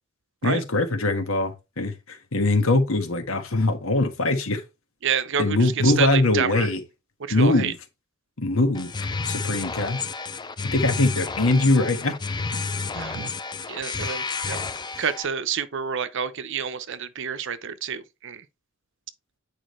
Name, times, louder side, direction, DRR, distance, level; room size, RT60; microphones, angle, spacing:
voice 1, 0.4-4.6 5.4-6.8 7.3-7.7 8.4-10.0 10.7-12.1, left 2 dB, 70° left, 1.5 m, -22 dB
voice 2, 5.0-6.7 7.2-7.7 12.9-13.3 13.7-14.6 15.0-18.4, right 7 dB, 60° right, 0.7 m, -28 dB
sound 1, 8.7-15.3, left 4 dB, 20° left, 0.5 m, -31 dB
8.9 x 4.9 x 3.1 m
head